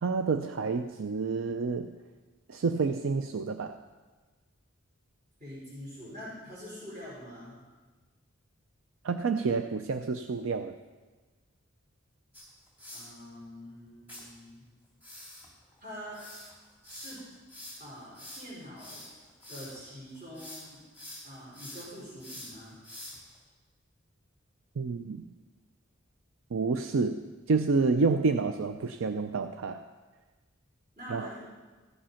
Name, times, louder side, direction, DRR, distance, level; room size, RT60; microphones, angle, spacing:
voice 1, 0.0-1.9 2.5-3.8 9.0-10.8 24.8-25.2 26.5-29.8 31.1-31.3, right 4 dB, 80° right, 8 dB, 0.5 m, -29 dB
voice 2, 5.4-7.6 12.9-14.6 15.8-16.3 16.8-17.3 17.8-19.1 19.5-20.8 21.2-22.8 31.0-31.4, equal, 40° right, -8 dB, 4.9 m, -45 dB
sound 1, 12.3-13.1 14.1-14.2 15.0-19.8 20.2-20.7 20.9-23.4, left 1 dB, 10° right, 2.8 m, -46 dB
14.5 x 7.7 x 5.7 m, 1.3 s
head